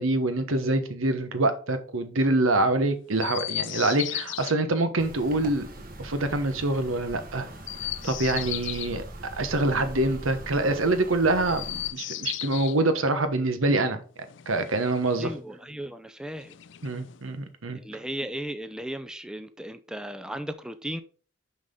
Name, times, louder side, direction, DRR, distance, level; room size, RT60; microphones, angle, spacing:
voice 1, 0.0-5.7 6.0-7.5 8.0-9.0 9.4-14.0 14.5-15.3 16.8-17.8, right 2 dB, 85° right, 1.2 m, -25 dB
Chirp tweet, 3.2-4.5 7.5-9.0 11.3-12.8 14.2-15.3 16.4-17.3, left 15 dB, 60° left, 0.4 m, -35 dB
sound 1, 5.0-11.9, right 1 dB, 45° right, 1.4 m, -42 dB
voice 2, 15.2-16.5 17.7-21.0, right 1 dB, 5° right, 0.4 m, -36 dB
6.2 x 5.7 x 5.2 m
head